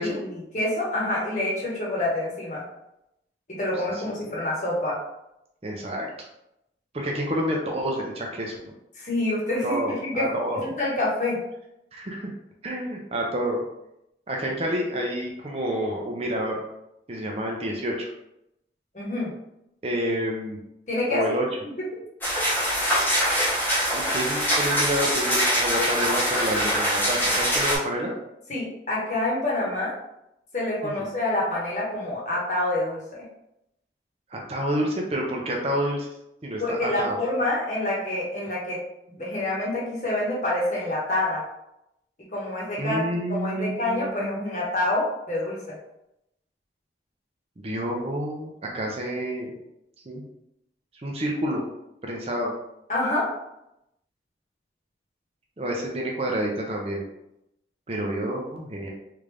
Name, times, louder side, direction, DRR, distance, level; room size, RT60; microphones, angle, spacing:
voice 1, 0.0-2.6 3.5-5.0 8.9-10.2 10.6-11.4 18.9-19.3 20.9-21.2 28.5-29.9 30.5-33.2 36.6-38.8 39.2-41.4 42.3-43.0 43.3-45.8 52.9-53.2, left 1 dB, 45° left, -5 dB, 1.1 m, -27 dB
voice 2, 5.6-6.1 6.9-8.6 9.6-10.6 11.9-12.3 12.6-13.6 14.3-16.6 17.1-18.1 19.8-20.6 21.1-21.4 23.9-28.1 31.0-31.1 34.3-36.1 36.4-37.2 42.8-44.4 47.6-49.5 50.1-50.2 51.0-51.6 52.0-52.5 55.6-57.0 57.9-58.9, equal, 35° right, -1 dB, 0.5 m, -28 dB
sound 1, 22.2-27.8, equal, 10° left, 0.8 m, -23 dB
3.4 x 2.5 x 3.3 m, 0.83 s
head